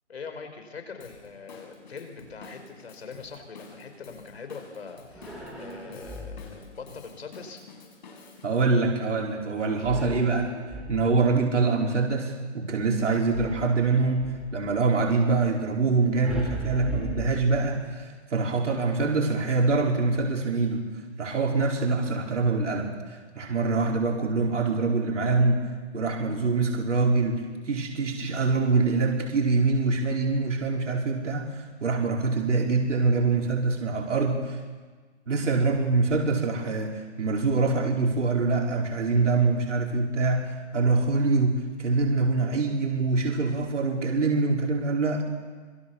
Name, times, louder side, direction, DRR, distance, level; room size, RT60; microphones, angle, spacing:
voice 1, 0.1-7.6, left 5 dB, 60° left, 6 dB, 5.0 m, -42 dB
Drum kit / Drum, 1.0-8.5, left 4 dB, 40° left, 5.6 m, -49 dB
sound 1, 5.1-6.6 9.8-11.4 13.3-14.5 16.2-17.9, equal, ahead, 1.9 m, -37 dB
voice 2, 8.4-10.5 10.9-20.8 21.2-25.7 25.9-34.6 35.3-45.2, right 3 dB, 85° right, 0 dB, 4.8 m, -25 dB
26.0 x 24.0 x 7.2 m, 1.5 s
hypercardioid pair, 180°, 35 cm